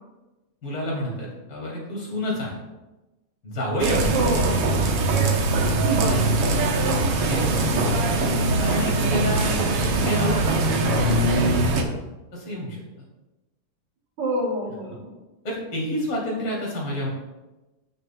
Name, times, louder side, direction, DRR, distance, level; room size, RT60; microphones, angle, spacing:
voice 1, 0.6-2.5 3.4-4.2 7.2-7.5 8.0-8.2 8.6-11.9 12.3-12.8 15.4-17.1, equal, 40° left, -4 dB, 3.7 m, -29 dB
sound 1, 3.8-11.8, right 2 dB, 60° right, 1.8 m, -22 dB
voice 2, 4.1-4.7 5.8-6.5 14.2-15.1, right 1 dB, 85° right, -8 dB, 5.3 m, -27 dB
17.5 x 6.5 x 2.3 m, 1.1 s
omnidirectional pair, 3.4 m